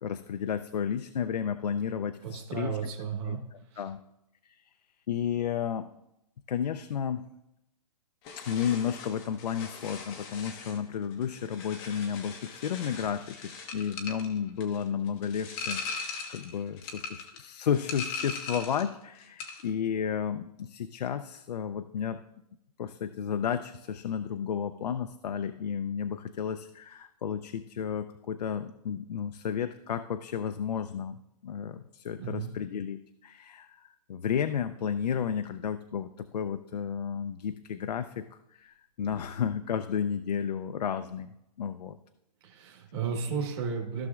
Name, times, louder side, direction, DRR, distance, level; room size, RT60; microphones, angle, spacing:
voice 1, 0.0-2.8 3.3-4.0 5.1-5.9 6.5-7.3 8.4-22.2 22.8-41.3 41.6-42.0, left 8 dB, 85° left, 9 dB, 0.5 m, -32 dB
voice 2, 2.2-3.4 3.7-3.8 32.2-32.5 42.4-44.1, right 6 dB, 35° right, -1 dB, 1.3 m, -33 dB
sound 1, 8.2-18.9 19.2-19.7, left 4 dB, 15° left, 0.5 m, -40 dB
14.5 x 6.2 x 2.4 m, 0.84 s
hypercardioid pair, 170°, 20 cm